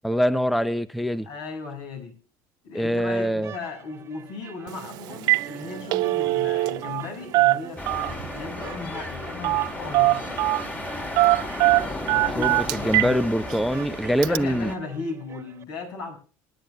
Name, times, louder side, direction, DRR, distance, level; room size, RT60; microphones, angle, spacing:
voice 1, 0.0-1.3 2.7-3.5 12.4-14.7, equal, ahead, 13 dB, 0.6 m, -24 dB
voice 2, 1.3-2.1 2.6-10.5 12.1-13.2 14.2-16.2, left 4 dB, 65° left, 3 dB, 7.1 m, -36 dB
sound 1, 3.3-15.6, right 8 dB, 40° right, 1.4 m, -45 dB
Telephone, 4.7-4.8 5.1-5.5 5.8-7.0 7.3-8.3 9.4-9.7 9.9-10.6 11.2-13.1 13.5-13.6 14.2-14.4, right 19 dB, 65° right, 0.6 m, -21 dB
sound 2, 7.8-14.8, left 2 dB, 20° left, 2.5 m, -34 dB
26.5 x 10.5 x 2.3 m, 0.37 s
supercardioid pair, 115°, 7 cm